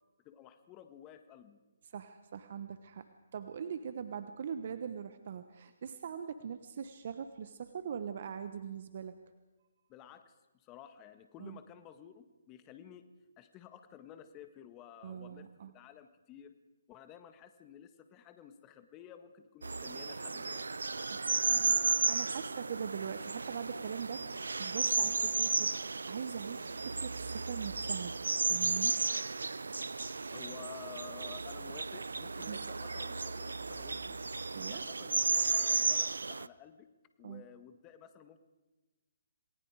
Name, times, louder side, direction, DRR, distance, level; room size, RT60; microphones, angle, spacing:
voice 1, 0.2-1.6 9.9-13.1 13.4-15.5 15.7-16.5 16.9-20.6 30.3-34.2 34.7-36.9 37.2-38.4, left 9 dB, 20° left, 9 dB, 1.6 m, -53 dB
voice 2, 1.9-3.1 3.3-9.2 11.4-11.6 15.0-15.7 21.1-28.1 28.5-29.0 32.5-32.6 34.5-34.8 37.2-37.4, right 7 dB, 50° right, 10 dB, 1.2 m, -42 dB
sound 1, 19.6-36.5, right 4 dB, 80° right, 0.6 m, -34 dB
28.0 x 19.5 x 4.9 m, 1.2 s
figure-of-eight pair, 145°, 0 cm